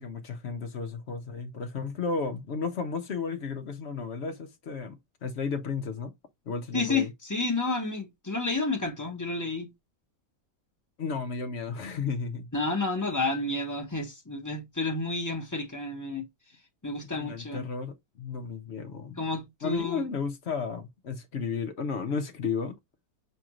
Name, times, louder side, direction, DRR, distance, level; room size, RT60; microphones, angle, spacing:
voice 1, 0.0-6.1 6.5-7.1 11.0-12.5 17.1-19.2 19.6-22.8, left 5 dB, 60° left, 0.7 m, -33 dB
voice 2, 6.7-9.7 12.5-16.2 16.8-17.6 19.2-20.1, left 3 dB, 15° left, 0.8 m, -30 dB
6.5 x 2.5 x 3.0 m
omnidirectional pair, 1.9 m